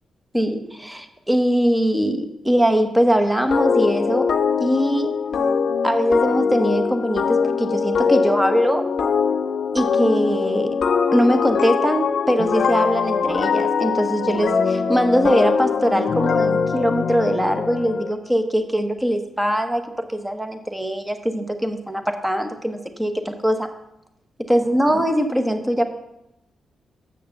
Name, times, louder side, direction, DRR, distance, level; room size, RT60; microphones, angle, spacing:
voice 1, 0.3-4.3 4.6-5.1 5.8-8.9 9.7-10.7 11.1-19.8 20.1-23.7 24.5-25.8, equal, 10° right, 7 dB, 1.1 m, -21 dB
sound 1, 3.5-18.1, left 5 dB, 70° left, 0.6 m, -22 dB
6.5 x 6.4 x 7.0 m, 0.85 s
cardioid pair, 70°, 0 cm